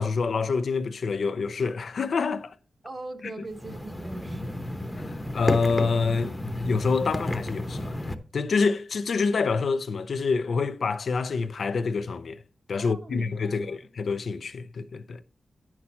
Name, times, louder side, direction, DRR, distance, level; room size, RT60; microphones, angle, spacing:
voice 1, 0.0-2.5 5.0-12.4 12.7-15.2, left 4 dB, 75° left, 0.6 m, -27 dB
voice 2, 2.8-4.6 12.8-13.8, right 2 dB, 40° right, 1.2 m, -41 dB
sound 1, 3.5-8.1, left 1 dB, 15° left, 0.9 m, -32 dB
9.7 x 6.0 x 4.2 m
wide cardioid pair, 95°, 0 cm